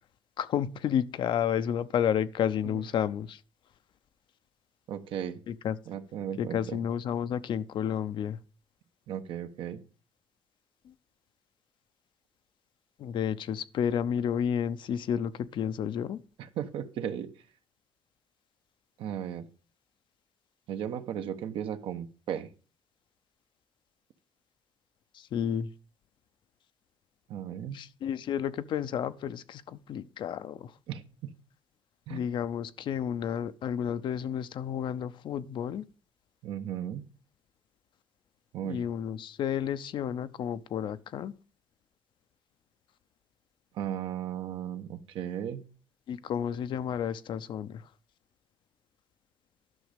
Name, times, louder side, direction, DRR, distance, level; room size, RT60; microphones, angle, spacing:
voice 1, 0.4-3.4 5.5-5.7 6.4-8.4 13.0-16.2 25.3-25.7 27.7-30.7 32.1-35.8 38.6-41.3 46.1-47.8, left 9 dB, 65° left, 0.6 m, -31 dB
voice 2, 4.9-5.4 5.9-6.8 9.1-9.8 16.4-17.3 19.0-19.5 20.7-22.5 27.3-27.8 30.9-31.3 32.1-32.2 36.4-37.1 38.5-38.8 43.7-45.7, right 9 dB, 75° right, 1.0 m, -36 dB
11.0 x 6.3 x 5.1 m
cardioid pair, 105°, 9 cm